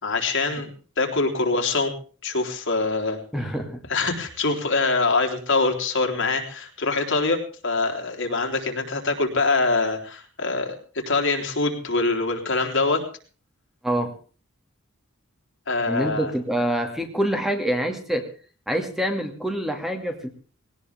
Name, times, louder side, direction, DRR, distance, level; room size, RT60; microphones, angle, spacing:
voice 1, 0.0-1.9 2.2-3.2 3.9-13.0 15.7-16.3, left 3 dB, 60° left, 3 dB, 3.8 m, -24 dB
voice 2, 3.3-3.8 13.8-14.1 15.9-18.2 18.7-20.3, right 1 dB, ahead, 3 dB, 2.3 m, -26 dB
20.0 x 18.5 x 3.6 m, 0.40 s
head